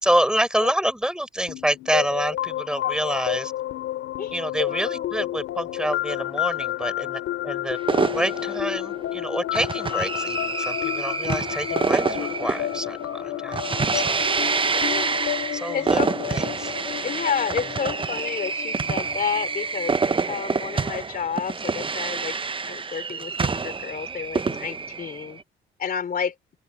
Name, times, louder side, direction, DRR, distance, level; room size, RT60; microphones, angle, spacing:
voice 1, 0.0-3.5 4.3-7.8 8.1-14.2 15.5-16.0 16.3-16.8, equal, 5° right, 5.4 m, -27 dB
sound 1, 1.5-21.0, left 14 dB, 85° left, 5.4 m, -31 dB
voice 2, 4.7-5.1 14.7-15.2 15.7-16.1 17.0-20.0 20.3-22.3 22.7-25.4 25.8-26.3, left 7 dB, 45° left, 3.1 m, -30 dB
sound 2, 7.9-25.4, right 5 dB, 25° right, 0.8 m, -27 dB
open air
cardioid pair, 90°, 20 cm